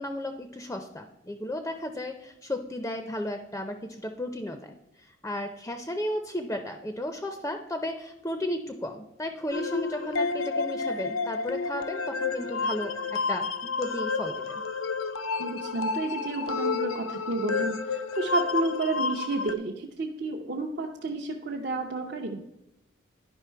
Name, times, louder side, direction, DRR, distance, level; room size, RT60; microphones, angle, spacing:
voice 1, 0.0-14.6, left 1 dB, 10° left, 7 dB, 0.5 m, -34 dB
sound 1, 9.5-19.5, left 4 dB, 85° left, 0.6 m, -30 dB
voice 2, 15.4-22.4, right 3 dB, 50° right, 0 dB, 0.6 m, -31 dB
10.5 x 5.4 x 4.5 m, 0.88 s
head